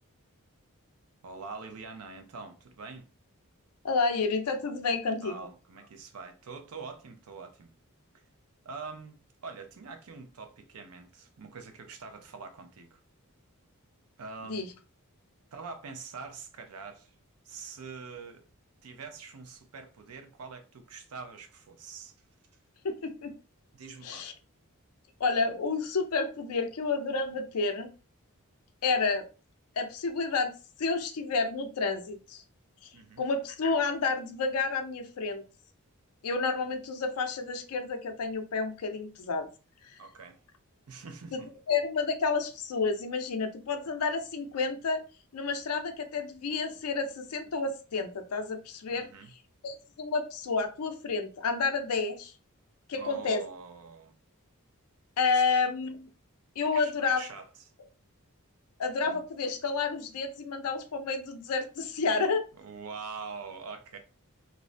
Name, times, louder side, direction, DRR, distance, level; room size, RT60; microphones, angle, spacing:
voice 1, 1.2-3.1 5.2-7.7 8.6-13.0 14.2-14.7 15.5-17.1 17.4-18.4 18.8-22.1 23.7-24.3 32.9-33.3 40.0-40.4 40.9-41.5 48.9-49.3 52.9-54.2 55.3-55.4 56.7-57.5 62.6-64.0, right 4 dB, 85° right, 0.5 m, -44 dB
voice 2, 3.8-5.4 14.5-14.7 22.8-23.3 24.0-24.3 25.2-27.9 28.8-29.3 29.8-30.5 30.8-32.4 33.2-35.4 36.2-39.5 41.3-41.4 41.7-45.0 45.3-49.1 49.6-52.3 52.9-53.4 55.2-56.1 56.6-57.2 58.8-62.4, left 4 dB, 90° left, 0.5 m, -30 dB
2.5 x 2.1 x 2.4 m
head